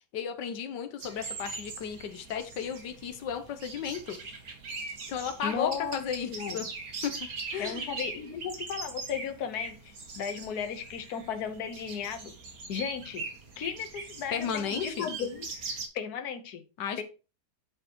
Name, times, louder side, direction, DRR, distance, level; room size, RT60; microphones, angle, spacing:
voice 1, 0.1-4.2 5.1-6.7 7.0-7.1 7.5-7.8 14.3-15.1 16.8-17.0, left 8 dB, 90° left, 8 dB, 1.5 m, -34 dB
sound 1, 1.0-15.9, right 4 dB, 60° right, 2.0 m, -41 dB
voice 2, 5.4-6.7 7.6-12.3 12.7-13.2 13.6-15.4 15.9-16.6 17.0-17.1, left 7 dB, 65° left, 8 dB, 1.5 m, -35 dB
9.3 x 6.2 x 3.0 m, 0.32 s
omnidirectional pair, 1.8 m